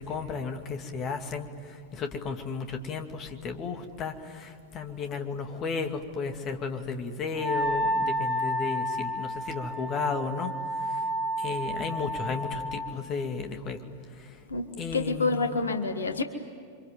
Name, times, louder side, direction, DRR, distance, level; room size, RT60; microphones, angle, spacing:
voice 1, 0.0-11.1 11.4-13.8 14.1-14.4 14.8-15.7, left 5 dB, 30° left, 5 dB, 2.5 m, -34 dB
Wind instrument woodwind instrument, 7.4-12.9, equal, 25° right, 2.9 m, -31 dB
voice 2, 14.9-16.2, left 3 dB, 75° left, 7 dB, 1.7 m, -27 dB
30.0 x 25.5 x 7.8 m, 2.2 s
figure-of-eight pair, 90°, 0 cm